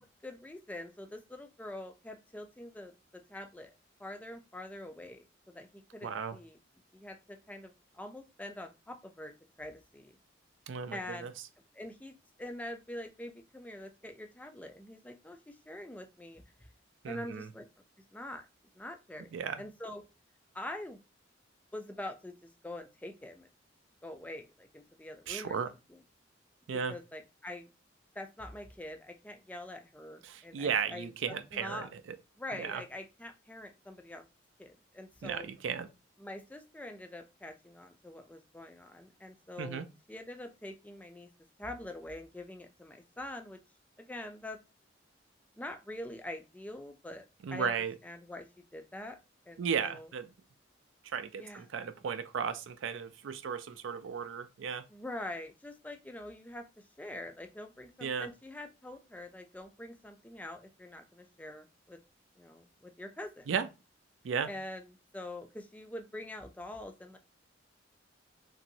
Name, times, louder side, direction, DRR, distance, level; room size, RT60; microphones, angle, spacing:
voice 1, 0.0-2.9 3.3-3.7 4.0-6.6 6.9-9.3 9.6-10.1 10.9-11.3 11.7-16.4 17.1-17.7 18.1-18.4 18.8-20.0 20.5-21.0 21.7-23.5 24.0-25.6 25.9-26.0 26.9-27.7 28.2-31.9 32.4-34.3 34.6-35.5 36.2-41.3 41.6-43.6 44.0-44.6 45.6-47.7 48.0-48.5 48.7-49.2 49.5-50.1 51.3-51.7 54.9-56.6 57.0-62.0 62.4-63.5 64.5-67.2, left 1 dB, 10° left, 0.3 m, -45 dB
voice 2, 6.0-6.4 10.7-11.3 17.0-17.5 19.3-19.6 25.3-25.7 26.7-26.9 30.2-31.9 32.6-32.8 35.2-35.9 39.6-39.8 47.4-47.9 49.6-50.3 51.1-54.8 58.0-58.3 63.5-63.7 64.2-64.5, right 6 dB, 80° right, 0.4 m, -35 dB
2.9 x 2.6 x 2.7 m
head